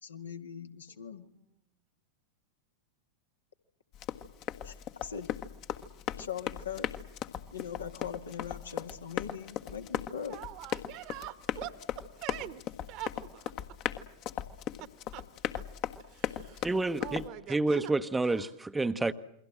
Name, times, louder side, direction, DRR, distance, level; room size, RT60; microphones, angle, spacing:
voice 1, 0.0-1.3 4.6-5.3 6.2-6.9 7.5-10.4, left 8 dB, 70° left, 2.0 m, -41 dB
Run, 3.9-17.3, left 10 dB, 40° left, 1.5 m, -38 dB
voice 2, 10.3-12.6 12.9-13.5 15.1-15.2 16.1-16.7 17.0-17.9 18.4-18.5, right 15 dB, 40° right, 1.4 m, -43 dB
voice 3, 16.6-19.1, right 2 dB, 10° right, 1.0 m, -29 dB
29.0 x 23.0 x 7.6 m
figure-of-eight pair, 90°, 0 cm